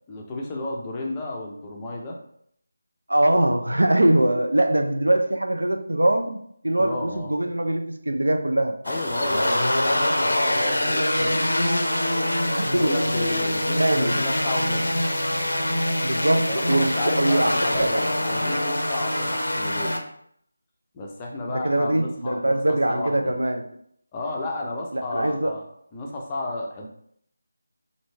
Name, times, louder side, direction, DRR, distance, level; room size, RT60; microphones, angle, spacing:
voice 1, 0.1-2.2 6.8-7.3 8.9-9.6 9.8-11.5 12.5-15.1 16.5-20.0 20.9-22.6 22.9-23.3 24.1-25.7 25.9-26.9, left 2 dB, 15° left, -1 dB, 0.5 m, -32 dB
voice 2, 3.1-8.8 12.6-13.1 13.8-14.2 16.0-18.1 21.5-23.7 24.9-25.5, right 1 dB, 70° right, 7 dB, 0.4 m, -22 dB
sound 1, 8.8-20.0, left 1 dB, 70° left, 0.5 m, -24 dB
3.1 x 2.6 x 3.1 m, 0.68 s
figure-of-eight pair, 160°, 0 cm